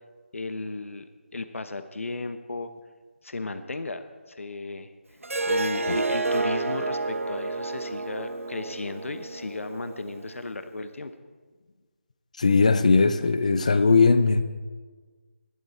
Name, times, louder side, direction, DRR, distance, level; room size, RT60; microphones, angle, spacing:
voice 1, 0.3-1.1 1.3-2.7 3.2-4.9 5.5-11.1, left 3 dB, 75° left, 10 dB, 1.0 m, -35 dB
Harp, 5.2-10.4, right 3 dB, 90° right, 0.8 m, -30 dB
voice 2, 12.4-14.4, left 4 dB, 30° left, 12 dB, 0.6 m, -19 dB
18.5 x 12.0 x 4.3 m, 1.4 s
figure-of-eight pair, 175°, 7 cm